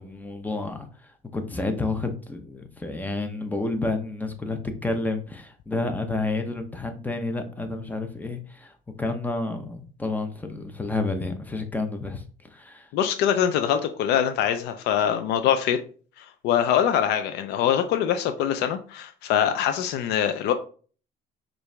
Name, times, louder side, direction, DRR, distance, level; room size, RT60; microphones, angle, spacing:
voice 1, 0.0-8.7 9.0-12.2 12.5-12.9, left 2 dB, 10° left, 0.7 m, -30 dB
voice 2, 12.9-15.8 16.2-20.5, left 9 dB, 85° left, 0.5 m, -23 dB
4.6 x 2.6 x 3.3 m
cardioid pair, 110°, 17 cm